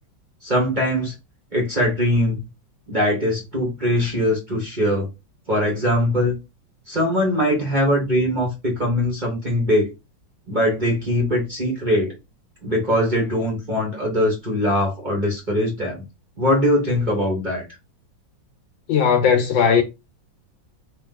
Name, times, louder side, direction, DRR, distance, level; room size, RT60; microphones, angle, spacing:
voice 1, 0.4-1.1 1.5-2.4 2.9-5.1 5.5-6.3 6.9-9.9 10.5-12.1 12.6-16.0 16.4-17.6, left 1 dB, 25° right, 1.2 m, -21 dB
voice 2, 18.9-19.8, left 7 dB, 75° left, 1.5 m, -17 dB
3.2 x 3.1 x 3.9 m
omnidirectional pair, 2.2 m